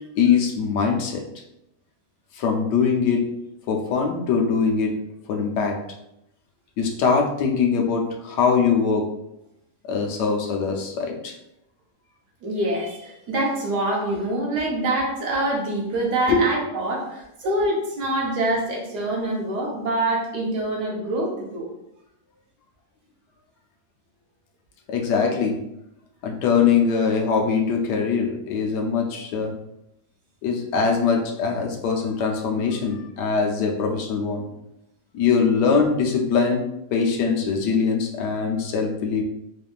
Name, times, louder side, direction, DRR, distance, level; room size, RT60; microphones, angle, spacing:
voice 1, 0.1-1.2 2.3-3.3 3.7-5.0 5.3-5.8 6.8-9.1 9.9-11.3 16.3-16.5 24.9-25.6 26.2-29.5 30.4-34.5 35.1-36.7 36.9-39.2, left 5 dB, 80° left, 1 dB, 1.3 m, -22 dB
voice 2, 12.4-21.7, right 1 dB, 70° right, -2 dB, 1.6 m, -25 dB
4.1 x 3.5 x 2.4 m, 0.82 s
omnidirectional pair, 1.8 m